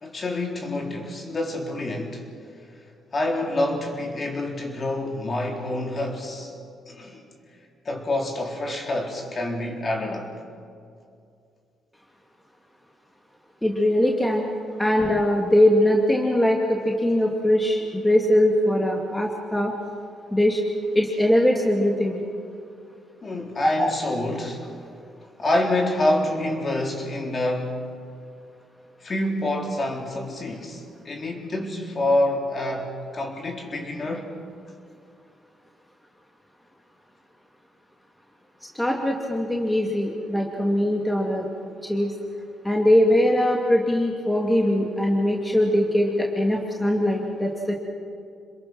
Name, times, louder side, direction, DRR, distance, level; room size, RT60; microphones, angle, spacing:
voice 1, 0.0-2.2 3.1-6.5 6.9-7.3 7.9-10.3 23.2-24.7 25.4-27.8 29.0-34.3, left 1 dB, 35° left, 3.9 m, -27 dB
voice 2, 13.6-14.5 14.8-19.7 20.3-20.6 20.9-22.2 23.6-23.9 38.7-41.5 41.8-42.1 42.6-47.8, left 1 dB, 10° left, 2.5 m, -21 dB
27.5 x 21.5 x 6.2 m
cardioid pair, 95°, 0 cm